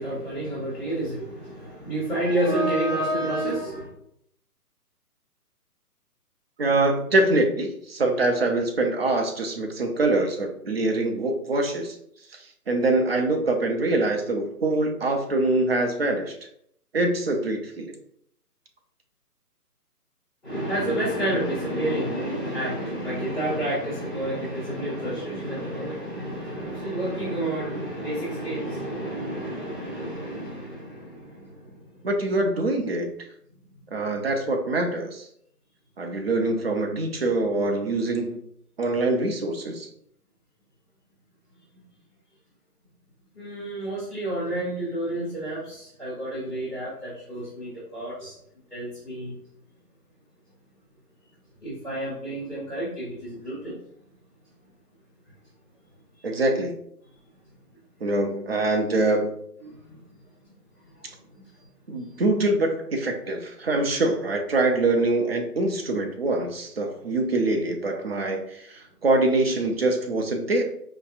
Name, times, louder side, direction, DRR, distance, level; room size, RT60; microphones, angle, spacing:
voice 1, 0.0-3.9 20.4-32.0 43.3-48.3 48.7-49.3 51.6-53.8 59.6-60.3 60.7-61.4 62.0-62.2, right 1 dB, ahead, -18 dB, 0.7 m, -30 dB
voice 2, 6.6-12.0 12.3-16.4 16.9-17.9 32.0-33.1 33.9-35.3 36.0-38.4 38.8-39.9 56.2-56.8 58.0-59.4 61.9-70.6, right 2 dB, 40° right, 4 dB, 0.5 m, -24 dB
4.4 x 2.8 x 2.4 m, 0.69 s
figure-of-eight pair, 145°, 47 cm